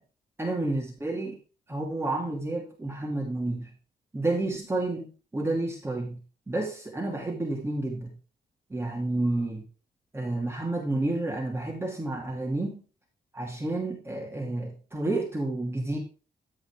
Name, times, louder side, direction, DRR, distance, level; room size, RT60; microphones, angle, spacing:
voice 1, 0.4-1.4 1.7-3.7 4.1-6.2 6.5-8.1 8.7-9.6 10.1-12.8 13.3-16.0, right 2 dB, 15° right, -2 dB, 2.7 m, -30 dB
14.0 x 4.9 x 4.9 m, 0.35 s
wide cardioid pair, 145°, 17 cm